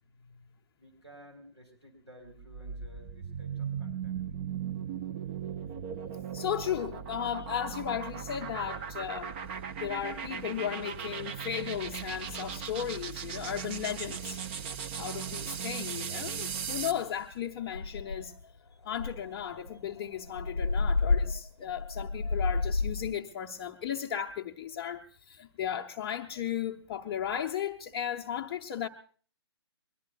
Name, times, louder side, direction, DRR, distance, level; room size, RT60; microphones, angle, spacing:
voice 1, 0.1-0.5 0.8-4.2, equal, 85° right, 4.2 m, -54 dB
sound 1, 2.3-17.1, right 7 dB, 25° right, 0.6 m, -38 dB
voice 2, 6.3-9.4 9.8-14.4 15.0-18.3 18.8-28.9, left 9 dB, 20° left, 0.7 m, -35 dB
sound 2, 16.2-16.3 16.7-17.0 17.3-17.4 17.7-18.4 18.9-23.1, left 3 dB, 80° left, 0.7 m, -30 dB
22.5 x 21.5 x 2.4 m
figure-of-eight pair, 135°, 14 cm